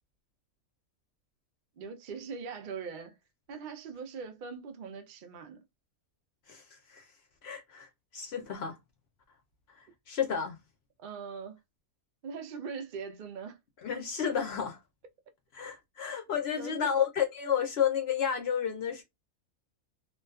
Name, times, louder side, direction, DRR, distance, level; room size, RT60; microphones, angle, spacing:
voice 1, 1.8-3.2 3.5-5.6 11.0-11.6 12.2-13.6 16.6-16.9, right 5 dB, 75° right, 0.4 m, -41 dB
voice 2, 6.5-7.0 7.4-8.8 9.7-10.6 13.8-14.8 15.5-19.0, left 8 dB, 65° left, 0.6 m, -31 dB
2.4 x 2.3 x 2.3 m
omnidirectional pair, 1.5 m